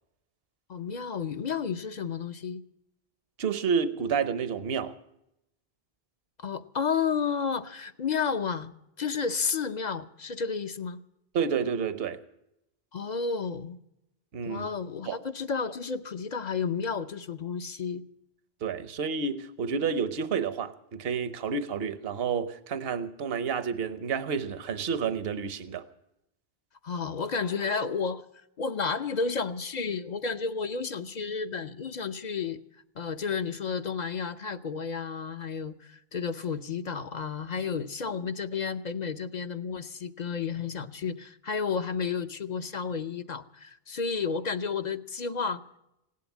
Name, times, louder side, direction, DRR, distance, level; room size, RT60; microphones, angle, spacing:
voice 1, 0.7-2.6 6.4-8.7 9.0-11.0 12.9-13.8 14.4-18.0 26.8-28.2 28.6-32.6 33.0-45.6, left 5 dB, 50° left, 0.8 m, -31 dB
voice 2, 3.4-5.0 11.3-12.2 14.3-14.7 15.0-15.2 18.6-25.8, right 6 dB, 70° right, 1.1 m, -30 dB
17.0 x 11.5 x 7.2 m
omnidirectional pair, 1.0 m